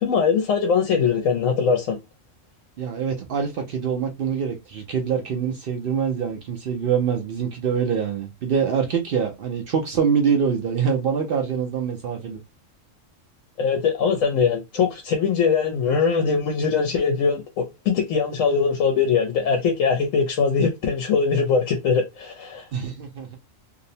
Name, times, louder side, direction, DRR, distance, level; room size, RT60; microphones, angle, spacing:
voice 1, 0.0-2.0 13.6-22.7, left 5 dB, 85° left, 1.0 m, -21 dB
voice 2, 2.8-12.4 22.7-23.4, right 7 dB, 60° right, 0.6 m, -24 dB
2.7 x 2.0 x 2.6 m
omnidirectional pair, 1.3 m